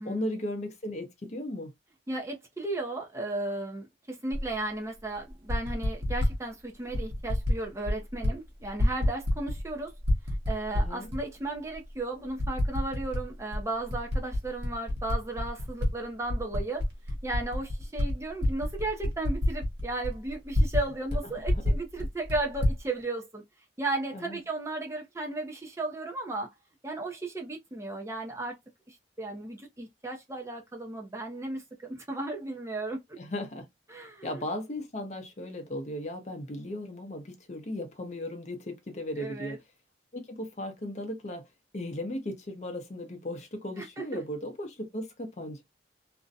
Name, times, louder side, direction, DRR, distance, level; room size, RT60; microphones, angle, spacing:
voice 1, 0.0-1.7 10.7-11.1 21.2-21.7 24.1-24.4 33.2-33.7 34.2-39.6 40.1-41.5 41.7-45.6, left 1 dB, 40° left, 0.5 m, -36 dB
voice 2, 2.1-9.9 10.5-23.4 23.8-26.5 26.8-28.6 28.9-33.0 33.9-34.3 39.2-39.6 43.8-44.2, right 2 dB, 15° right, 0.4 m, -35 dB
Typing, 4.3-4.5 5.3-6.4 6.9-7.6 7.8-8.3 8.6-9.7 10.0-11.2 11.7-11.8 12.4-13.2 13.5-15.9 16.2-20.8 21.1-21.2 21.4-22.8, left 1 dB, 65° right, 0.9 m, -28 dB
2.5 x 2.1 x 2.5 m
head